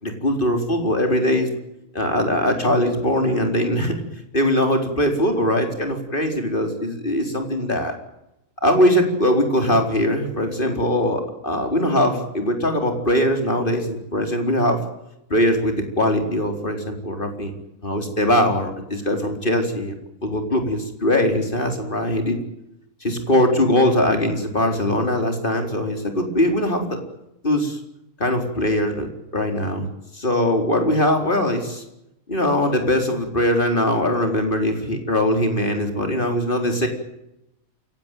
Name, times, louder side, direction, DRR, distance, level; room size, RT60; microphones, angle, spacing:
voice 1, 0.0-1.5 1.9-4.0 4.3-7.9 8.6-14.8 15.3-17.5 17.8-20.0 20.2-22.4 23.0-27.0 27.4-27.8 28.2-29.1 29.3-29.9 30.1-31.8 32.3-36.9, left 1 dB, 35° left, 5 dB, 4.5 m, -21 dB
28.5 x 17.5 x 9.2 m, 0.87 s
omnidirectional pair, 1.5 m